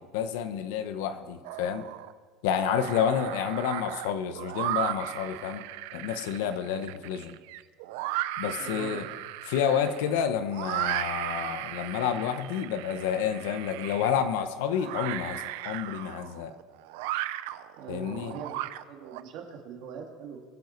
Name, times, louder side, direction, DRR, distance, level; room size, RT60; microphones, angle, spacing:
voice 1, 0.0-1.9 2.4-5.6 5.9-7.3 8.4-9.0 9.5-16.5 17.9-18.4, left 8 dB, 80° left, 9 dB, 1.1 m, -29 dB
sound 1, 1.4-2.1 2.5-19.2, right 14 dB, 75° right, 0.6 m, -36 dB
voice 2, 8.6-9.2 17.8-18.6 18.9-20.4, right 6 dB, 50° right, 1 dB, 2.4 m, -41 dB
23.0 x 7.9 x 4.7 m, 1.5 s
cardioid pair, 170°, 0 cm